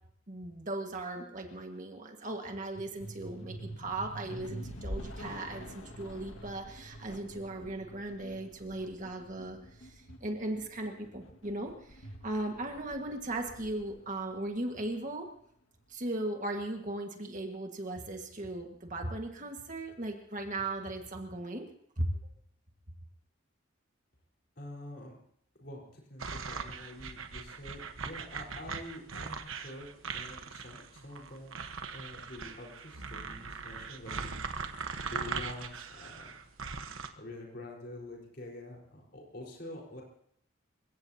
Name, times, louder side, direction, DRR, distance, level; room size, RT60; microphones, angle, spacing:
voice 1, 0.3-15.3 15.9-21.6 22.0-22.1, right 2 dB, 40° right, 3 dB, 1.7 m, -37 dB
sound 1, 2.7-15.3, equal, 80° left, 2.0 m, -46 dB
voice 2, 24.6-25.2 25.6-29.9 30.1-31.6 31.9-36.4 37.2-40.0, left 1 dB, 50° left, -2 dB, 4.5 m, -47 dB
sound 2, 26.2-37.1, right 5 dB, 80° right, 1.2 m, -40 dB
28.0 x 16.5 x 2.9 m, 0.67 s
head